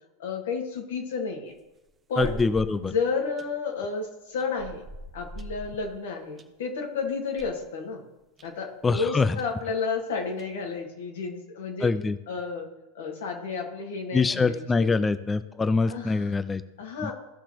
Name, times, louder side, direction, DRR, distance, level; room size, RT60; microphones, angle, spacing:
voice 1, 0.2-1.5 2.1-2.4 2.8-4.9 5.1-8.0 8.4-11.9 12.3-12.7 12.9-15.0 15.9-16.3 16.8-17.1, left 4 dB, 70° left, 2 dB, 1.8 m, -31 dB
sound 1, 1.5-2.9 3.4-3.7 4.4-6.5 6.9-7.0 7.4-7.6 8.4-8.5 8.8-8.9 9.4-9.5 10.2-10.7, equal, 20° right, 1.0 m, -42 dB
voice 2, 2.2-2.9 8.8-9.4 11.8-12.2 14.1-16.6 17.0-17.1, left 4 dB, 15° left, 13 dB, 0.4 m, -24 dB
15.5 x 5.8 x 2.9 m, 1.0 s
hypercardioid pair, 95°, 0 cm